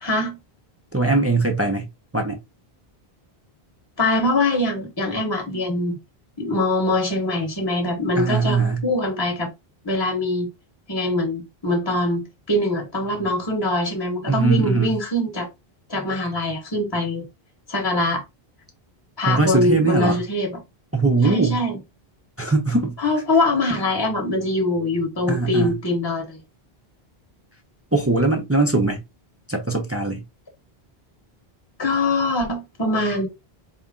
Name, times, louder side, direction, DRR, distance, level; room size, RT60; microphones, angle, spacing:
voice 1, 0.0-0.4 4.0-6.0 6.4-9.5 9.8-10.5 10.9-15.5 15.9-17.2 17.7-18.2 19.2-20.5 21.2-21.8 23.0-26.4 31.8-33.3, left 2 dB, 25° left, 1.1 m, -23 dB
voice 2, 0.9-1.9 2.1-2.4 8.2-8.8 14.3-14.9 19.3-20.2 20.9-21.6 22.4-22.9 25.3-25.8 27.9-29.0 29.5-30.2, right 3 dB, 15° right, 0.6 m, -21 dB
4.2 x 2.5 x 3.6 m
omnidirectional pair, 1.0 m